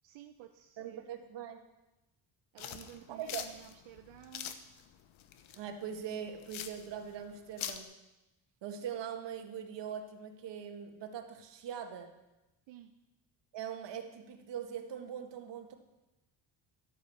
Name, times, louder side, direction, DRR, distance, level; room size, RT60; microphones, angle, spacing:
voice 1, 0.0-1.0 2.5-4.6 12.7-12.9, right 13 dB, 90° right, 6 dB, 0.9 m, -53 dB
voice 2, 0.8-1.6 3.1-3.5 5.5-7.9 8.6-12.1 13.5-15.8, right 8 dB, 65° right, 6 dB, 1.7 m, -42 dB
sound 1, 2.6-7.8, left 10 dB, 85° left, 1.1 m, -44 dB
12.5 x 8.9 x 7.1 m, 0.97 s
cardioid pair, 155°, 46 cm